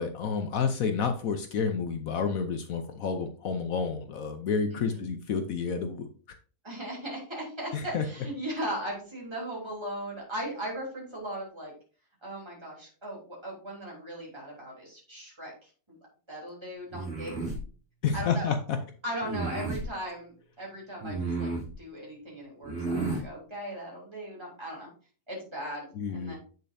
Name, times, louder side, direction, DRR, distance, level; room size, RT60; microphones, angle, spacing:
voice 1, 0.0-6.4 7.7-8.1 18.0-18.8 25.9-26.3, left 5 dB, 65° left, 7 dB, 1.2 m, -30 dB
voice 2, 4.7-5.1 6.6-11.7 12.2-15.7 16.3-17.3 18.1-18.5 19.0-21.5 21.8-24.9 25.3-26.4, right 1 dB, 15° right, -4 dB, 3.4 m, -38 dB
sound 1, 16.9-17.6 19.2-19.9 21.0-21.7 22.6-23.2, right 3 dB, 45° right, 3.4 m, -32 dB
8.3 x 6.7 x 2.7 m, 0.39 s
omnidirectional pair, 1.6 m